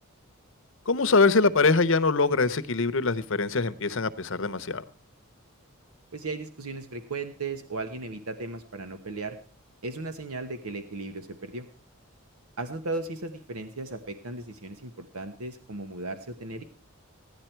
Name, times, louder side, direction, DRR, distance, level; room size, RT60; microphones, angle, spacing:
voice 1, 0.9-4.8, left 4 dB, 60° left, 0.8 m, -23 dB
voice 2, 6.1-9.4 9.8-11.7 12.6-16.6, right 3 dB, 85° right, 1.1 m, -36 dB
16.0 x 10.5 x 4.5 m
head